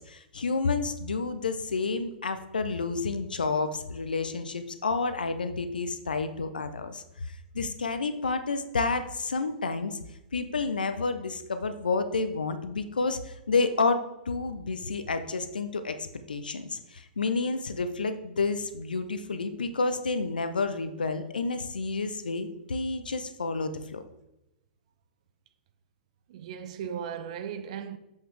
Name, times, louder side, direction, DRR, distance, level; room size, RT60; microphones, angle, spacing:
voice 1, 0.0-7.0 7.5-10.0 10.3-14.0 14.3-24.0, left 4 dB, 70° left, 0.7 m, -30 dB
voice 2, 26.3-28.0, right 8 dB, 45° right, 0.6 m, -36 dB
7.5 x 5.6 x 3.5 m
figure-of-eight pair, 110°, 5 cm